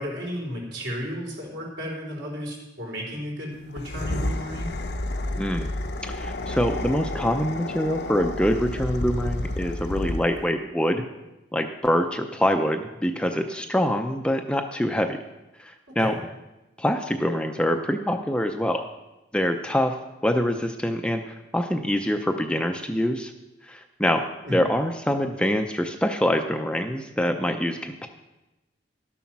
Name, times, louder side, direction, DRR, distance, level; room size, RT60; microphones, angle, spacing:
voice 1, 0.0-4.7 15.9-16.2 24.4-24.6, equal, 70° right, -1 dB, 3.8 m, -33 dB
sound 1, 3.7-10.5, left 1 dB, 60° left, 0.7 m, -30 dB
voice 2, 5.4-5.7 6.1-11.0 11.5-15.2 15.6-16.1 16.8-18.8 19.3-20.0 20.2-23.3 23.6-28.1, equal, 5° left, 5 dB, 0.5 m, -25 dB
12.5 x 7.2 x 6.0 m, 1.0 s
head